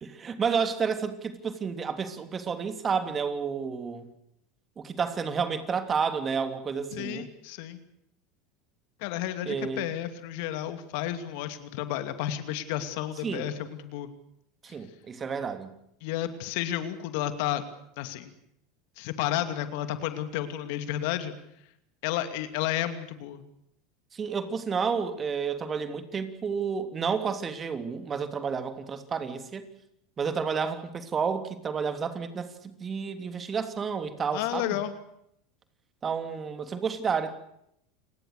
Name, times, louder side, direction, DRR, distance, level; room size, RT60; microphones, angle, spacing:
voice 1, 0.0-4.1 4.8-7.3 9.5-9.9 13.2-13.5 14.6-15.7 24.1-29.7 30.2-34.8 36.0-37.3, right 6 dB, 30° right, 9 dB, 3.1 m, -30 dB
voice 2, 6.9-7.8 9.0-14.1 16.0-17.6 18.0-18.3 19.0-21.3 22.0-23.5 34.3-34.9, left 12 dB, 65° left, 10 dB, 2.6 m, -32 dB
29.0 x 20.0 x 6.8 m, 0.77 s
hypercardioid pair, 85°, 0 cm